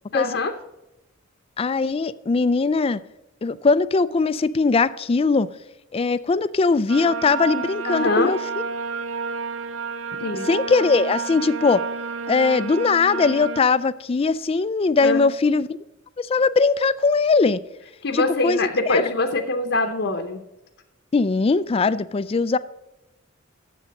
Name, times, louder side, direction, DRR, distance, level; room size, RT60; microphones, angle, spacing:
voice 1, 0.1-0.5 7.9-8.3 10.2-10.5 15.0-15.3 18.0-20.4, left 3 dB, 60° left, 0.8 m, -23 dB
voice 2, 1.6-3.0 3.4-5.5 5.9-8.4 10.5-11.8 12.3-15.7 16.2-17.6 18.1-18.6 18.9-19.0 21.1-22.6, left 4 dB, 30° left, 0.3 m, -20 dB
sound 1, 6.9-13.6, right 5 dB, 75° right, 0.5 m, -30 dB
10.5 x 7.5 x 5.2 m
head